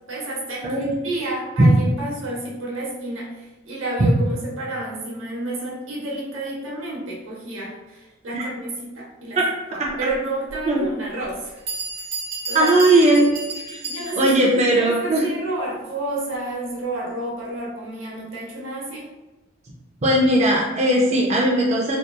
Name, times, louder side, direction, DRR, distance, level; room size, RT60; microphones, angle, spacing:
voice 1, 0.1-9.4 9.7-11.6 12.0-12.1 12.5-12.7 13.2-13.3 13.9-19.1, right 2 dB, 85° right, -4 dB, 0.8 m, -30 dB
Bell, 10.5-10.6 11.3-11.4 11.7-14.5, right 3 dB, 55° right, 0.9 m, -32 dB
voice 2, 12.5-13.3 13.7-13.8 14.2-15.2 20.0-22.0, right 1 dB, 35° right, -3 dB, 0.4 m, -17 dB
2.7 x 2.4 x 2.2 m, 1.1 s
head